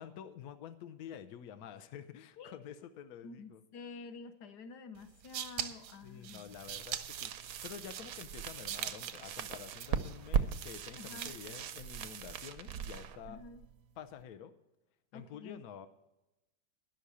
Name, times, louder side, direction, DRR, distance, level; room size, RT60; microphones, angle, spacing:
voice 1, 0.0-3.6 6.0-7.3 7.6-13.4 14.0-14.5 15.1-15.9, left 9 dB, 75° left, 9 dB, 0.8 m, -49 dB
voice 2, 3.2-6.6 11.0-11.3 13.3-13.6 15.1-15.6, left 4 dB, 60° left, 10 dB, 1.2 m, -49 dB
sound 1, 5.0-11.6, right 10 dB, 90° right, 1.6 m, -43 dB
sound 2, 6.5-14.2, right 8 dB, 70° right, 0.8 m, -39 dB
11.0 x 6.5 x 8.3 m, 0.98 s
omnidirectional pair, 2.4 m